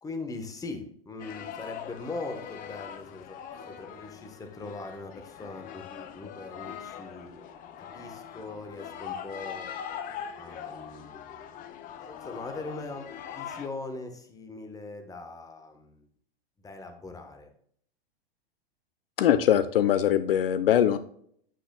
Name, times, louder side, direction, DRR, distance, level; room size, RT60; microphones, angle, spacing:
voice 1, 0.0-3.4 3.7-7.5 7.8-9.7 10.3-11.5 12.0-13.1 13.3-16.1 16.6-17.5, left 3 dB, 10° left, 5 dB, 1.2 m, -40 dB
sound 1, 1.2-13.7, left 8 dB, 30° left, 0.7 m, -42 dB
voice 2, 19.2-21.0, left 10 dB, 65° left, 13 dB, 0.6 m, -22 dB
9.1 x 7.6 x 2.3 m, 0.63 s
figure-of-eight pair, 100°, 30 cm